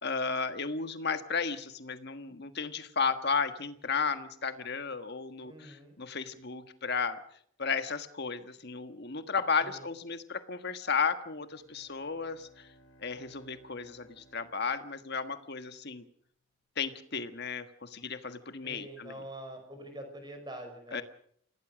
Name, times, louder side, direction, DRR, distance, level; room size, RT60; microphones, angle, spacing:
voice 1, 0.0-7.2 7.6-12.7 13.0-16.0 16.8-19.1 20.9-21.0, left 5 dB, 50° left, 9 dB, 1.5 m, -34 dB
voice 2, 5.4-6.0 9.6-9.9 18.6-21.0, right 1 dB, 20° right, 5 dB, 5.8 m, -45 dB
Bowed string instrument, 11.2-15.5, right 1 dB, 65° left, 3.4 m, -62 dB
27.5 x 17.0 x 6.4 m, 0.64 s
head